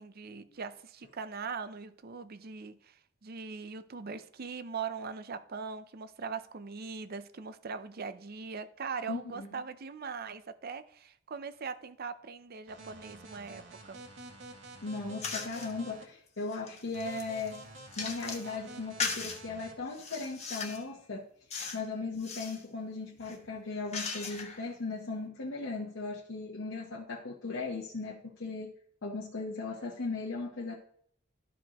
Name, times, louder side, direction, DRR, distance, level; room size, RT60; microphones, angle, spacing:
voice 1, 0.0-14.0, right 5 dB, 50° right, 0.6 m, -41 dB
voice 2, 9.1-9.5 14.8-17.6 18.0-21.2 21.7-28.7 29.0-30.7, left 3 dB, 75° left, 1.0 m, -37 dB
sound 1, 12.7-16.0 16.9-19.7, right 2 dB, 75° right, 1.9 m, -49 dB
sound 2, 15.2-15.7 16.3-18.5 19.0-19.4 19.9-20.9 21.5-21.9 22.1-22.6 23.2-24.7, left 5 dB, 35° left, 1.2 m, -38 dB
13.0 x 5.1 x 2.9 m
head